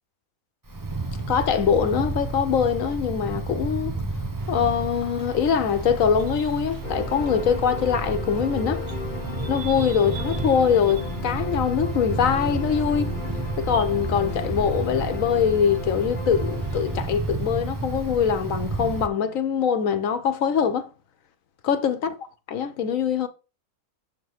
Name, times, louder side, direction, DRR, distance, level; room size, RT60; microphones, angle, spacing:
Wind, 0.7-19.1, right 3 dB, 30° right, 0.3 m, -31 dB
voice 1, 1.3-3.9 4.5-8.8 9.5-13.1 13.6-20.9 21.6-22.1 22.5-23.3, left 7 dB, 65° left, 1.2 m, -23 dB
sound 1, 4.4-19.1, right 3 dB, 80° right, 1.7 m, -45 dB
sound 2, 6.8-17.0, left 3 dB, 40° left, 1.0 m, -35 dB
7.0 x 3.7 x 6.3 m
omnidirectional pair, 1.6 m